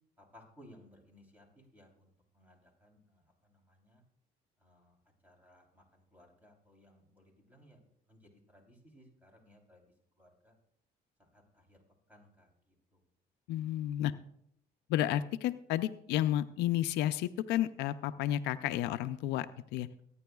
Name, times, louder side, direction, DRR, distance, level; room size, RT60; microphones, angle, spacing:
voice 1, 0.2-4.0 4.6-5.0 5.2-7.8 8.1-10.6 11.2-11.8 12.1-13.0, left 1 dB, 10° right, 1 dB, 3.4 m, -61 dB
voice 2, 13.5-14.1 14.9-19.5 19.7-19.9, left 12 dB, 90° left, 12 dB, 0.5 m, -31 dB
23.5 x 9.8 x 2.3 m, 0.75 s
cardioid pair, 110°, 17 cm